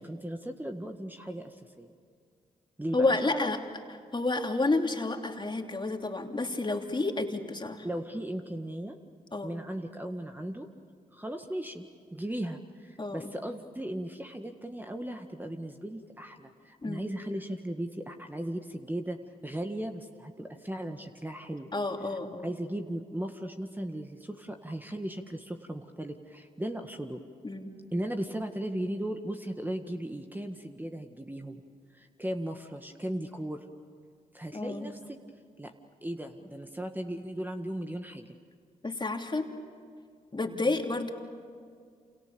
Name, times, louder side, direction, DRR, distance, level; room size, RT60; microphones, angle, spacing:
voice 1, 0.0-1.9 2.8-3.5 7.8-9.0 9.4-10.7 11.1-21.7 22.4-27.2 27.9-31.6 31.9-33.6 34.3-35.2 35.6-35.7 36.0-38.4, right 1 dB, 10° right, 5 dB, 1.8 m, -37 dB
voice 2, 2.9-3.6 4.1-7.9 9.3-9.6 13.0-13.2 16.8-17.1 21.7-22.5 27.4-27.7 34.5-34.9 38.8-39.5 40.3-41.1, left 2 dB, 30° left, 3 dB, 3.0 m, -30 dB
28.5 x 28.0 x 7.0 m, 2.1 s
hypercardioid pair, 45°, 16 cm